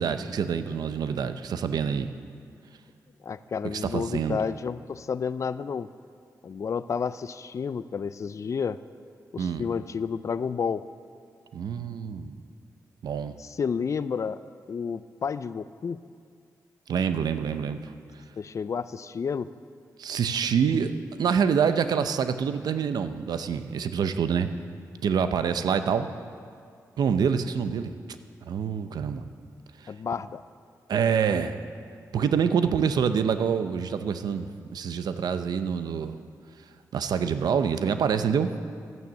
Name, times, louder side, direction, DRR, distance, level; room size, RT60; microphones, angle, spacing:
voice 1, 0.0-2.1 3.6-4.4 9.4-9.7 11.5-12.4 13.0-13.3 16.9-17.9 20.0-24.5 25.0-26.1 27.0-27.9 28.5-29.2 29.8-29.9 30.9-31.7 32.1-36.2 36.9-38.5, right 7 dB, 80° right, 10 dB, 0.6 m, -26 dB
voice 2, 3.2-5.9 6.4-8.8 9.3-10.8 13.4-14.4 14.7-16.0 18.4-19.5 29.9-30.4, left 6 dB, 50° left, 14 dB, 0.4 m, -30 dB
12.5 x 9.1 x 7.2 m, 2.2 s
cardioid pair, 70°, 7 cm